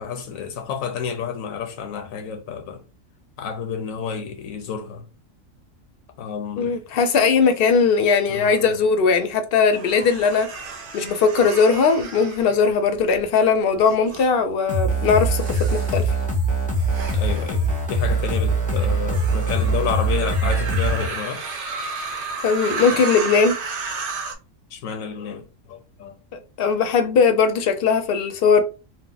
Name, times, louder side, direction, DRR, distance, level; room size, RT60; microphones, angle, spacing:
voice 1, 0.0-2.8 3.4-5.1 6.2-6.8 8.3-8.7 12.8-12.9 13.5-13.6 17.1-21.4 24.7-26.2, left 7 dB, 85° left, 1.0 m, -30 dB
voice 2, 6.6-10.5 10.9-16.1 22.4-23.6 26.3-28.6, left 5 dB, 60° left, 0.6 m, -19 dB
sound 1, 9.7-13.2 13.8-14.3 15.0-24.3, right 4 dB, 55° right, 0.7 m, -33 dB
sound 2, 14.7-21.1, right 2 dB, 10° left, 0.6 m, -22 dB
2.8 x 2.1 x 3.9 m
omnidirectional pair, 1.4 m